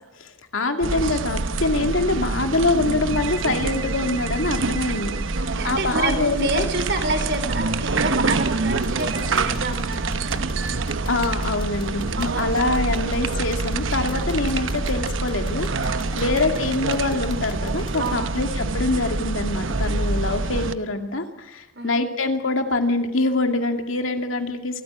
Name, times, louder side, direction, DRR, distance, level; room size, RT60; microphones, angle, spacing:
voice 1, 0.2-5.2 5.6-6.7 11.1-24.8, left 2 dB, 85° left, 5 dB, 2.4 m, -24 dB
sound 1, 0.8-20.7, right 3 dB, 75° right, 0.9 m, -26 dB
voice 2, 5.3-11.0 12.2-12.6 14.1-14.3 15.9-16.2 18.0-18.4 21.7-21.9, right 2 dB, 60° right, 7 dB, 3.9 m, -29 dB
sound 2, 8.7-18.1, left 4 dB, 25° left, 2.3 m, -44 dB
27.5 x 14.0 x 8.7 m, 0.99 s
head